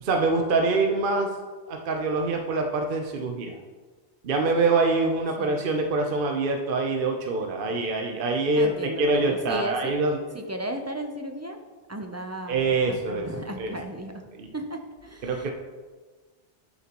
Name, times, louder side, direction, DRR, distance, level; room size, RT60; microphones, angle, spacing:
voice 1, 0.0-1.3 1.7-3.6 4.2-10.2 12.5-13.3 13.6-13.7 14.3-14.5 15.2-15.5, right 3 dB, 50° right, 3 dB, 0.9 m, -25 dB
voice 2, 5.4-5.7 8.6-9.9 10.3-11.6 11.9-14.1 14.5-15.5, right 1 dB, 20° right, 4 dB, 0.4 m, -35 dB
11.5 x 6.8 x 3.0 m, 1.3 s
omnidirectional pair, 1.2 m